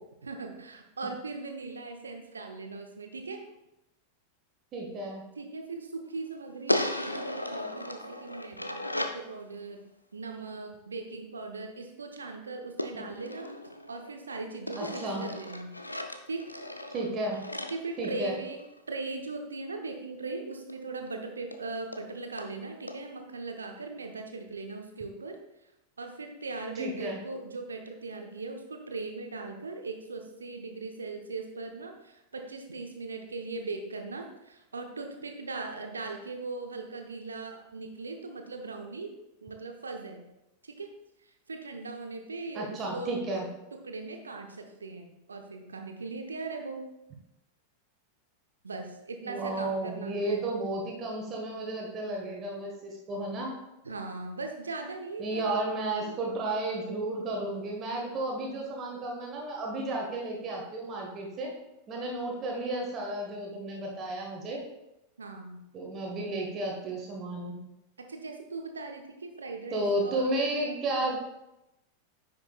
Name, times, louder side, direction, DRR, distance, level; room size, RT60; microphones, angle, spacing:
voice 1, 0.2-3.4 5.4-9.8 10.1-13.5 13.9-15.7 16.3-16.5 17.7-18.6 18.9-25.4 26.0-39.1 39.4-40.2 40.6-40.9 41.2-43.4 43.7-46.8 48.6-50.4 53.8-55.6 56.0-56.2 65.2-65.6 68.0-70.5 71.0-71.2, right 3 dB, 75° right, 4 dB, 0.9 m, -39 dB
voice 2, 4.7-5.2 12.9-13.1 14.8-15.2 16.9-17.5 18.0-18.4 26.7-27.2 42.5-43.5 49.2-53.5 55.2-61.5 61.9-64.6 65.7-67.6 69.7-71.2, right 2 dB, 30° right, -1 dB, 1.5 m, -33 dB
sound 1, 6.7-9.3 12.8-14.2 14.7-18.8 20.7-20.8 21.1-21.2 21.5-21.6 21.9-22.0 22.4-22.5 22.9-23.0, left 1 dB, 85° left, 0.5 m, -35 dB
9.7 x 5.7 x 2.4 m, 0.91 s
figure-of-eight pair, 90°, 0 cm